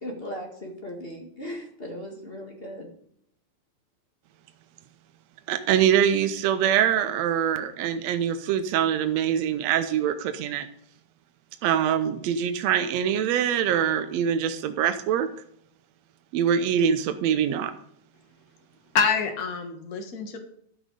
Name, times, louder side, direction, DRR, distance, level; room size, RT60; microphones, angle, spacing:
voice 1, 0.0-2.9, equal, 25° left, 1 dB, 1.3 m, -37 dB
voice 2, 5.5-10.7 11.6-15.3 16.3-17.7, right 9 dB, 85° right, 9 dB, 1.5 m, -24 dB
voice 3, 18.9-20.4, left 5 dB, 80° left, 5 dB, 0.8 m, -26 dB
13.0 x 6.2 x 5.2 m, 0.69 s
omnidirectional pair, 3.9 m